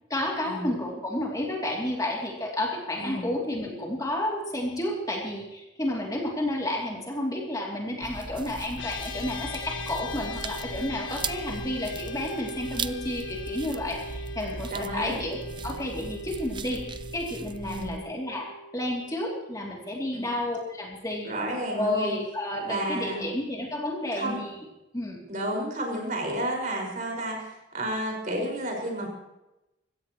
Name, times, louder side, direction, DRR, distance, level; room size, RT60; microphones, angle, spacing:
voice 1, 0.1-21.3 21.8-24.6 24.9-25.2, left 1 dB, 20° left, -1 dB, 2.8 m, -31 dB
sound 1, 8.0-18.0, right 4 dB, 25° right, 0.5 m, -38 dB
sound 2, 8.8-20.2, left 2 dB, 85° left, 1.7 m, -41 dB
voice 2, 14.7-15.2 17.6-17.9 20.1-20.3 21.2-22.2 22.6-23.2 24.1-24.4 25.3-29.1, right 1 dB, 45° right, 1 dB, 5.3 m, -31 dB
24.5 x 16.5 x 3.1 m, 0.94 s
head